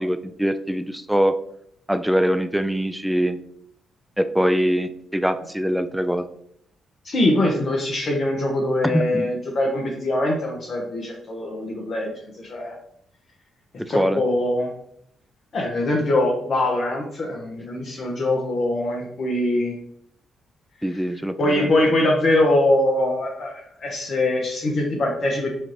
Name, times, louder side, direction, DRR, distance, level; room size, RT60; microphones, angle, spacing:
voice 1, 0.0-1.4 1.9-3.4 4.2-6.3 8.8-9.3 13.8-14.2 20.8-21.7, equal, 5° right, 10 dB, 0.4 m, -23 dB
voice 2, 7.0-12.8 13.9-14.7 15.5-19.7 20.8-25.5, left 1 dB, 55° left, -1 dB, 0.8 m, -23 dB
4.2 x 2.5 x 3.1 m, 0.70 s
hypercardioid pair, 45°, 0 cm